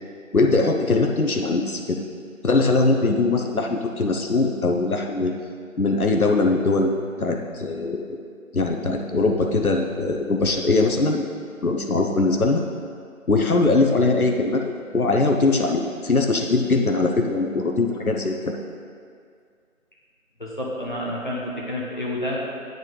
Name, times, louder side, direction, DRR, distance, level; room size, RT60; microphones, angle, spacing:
voice 1, 0.3-2.0 2.4-5.3 5.8-8.2 8.5-11.2 11.6-12.6 13.3-14.6 14.9-18.5, left 3 dB, 85° left, 2 dB, 1.0 m, -21 dB
voice 2, 20.4-22.6, left 1 dB, 35° left, -5 dB, 1.3 m, -29 dB
9.5 x 7.2 x 4.0 m, 2.2 s
figure-of-eight pair, 175°, 42 cm